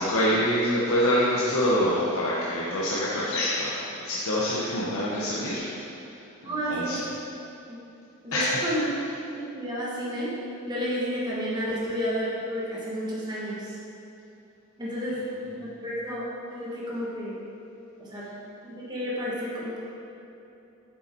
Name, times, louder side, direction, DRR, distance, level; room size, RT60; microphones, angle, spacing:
voice 1, 0.0-5.6 6.5-7.0 8.3-8.6, equal, 65° left, -7 dB, 1.1 m, -25 dB
voice 2, 6.4-7.0 7.7-7.8 8.2-8.9 9.3-10.3 10.7-13.7 14.8-15.3 15.5-17.4 18.0-18.3 18.6-19.8, equal, 20° right, -7 dB, 1.6 m, -31 dB
8.6 x 7.1 x 4.5 m, 2.8 s
head